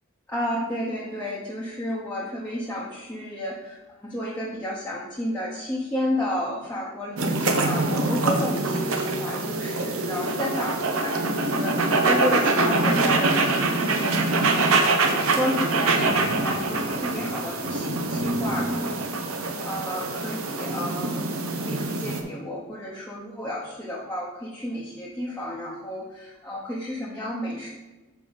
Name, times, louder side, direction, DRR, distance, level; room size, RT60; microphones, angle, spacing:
voice 1, 0.3-27.7, left 1 dB, 10° left, -6 dB, 0.9 m, -32 dB
sound 1, 7.2-22.2, right 3 dB, 90° right, 0.8 m, -24 dB
6.8 x 4.9 x 4.0 m, 1.1 s
head